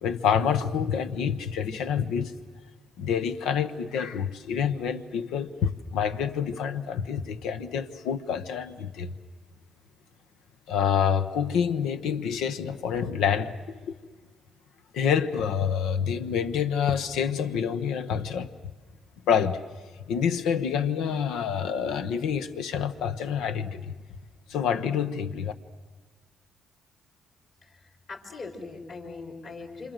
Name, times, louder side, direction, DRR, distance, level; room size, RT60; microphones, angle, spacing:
voice 1, 0.0-2.3 3.0-9.1 10.7-13.5 13.9-14.0 14.9-18.5 19.3-19.6 20.1-23.9 24.5-25.5, left 7 dB, 90° left, 1.1 m, -27 dB
voice 2, 27.6-29.9, left 3 dB, 50° left, 4.6 m, -41 dB
27.0 x 26.0 x 7.7 m
cardioid pair, 90°, 0 cm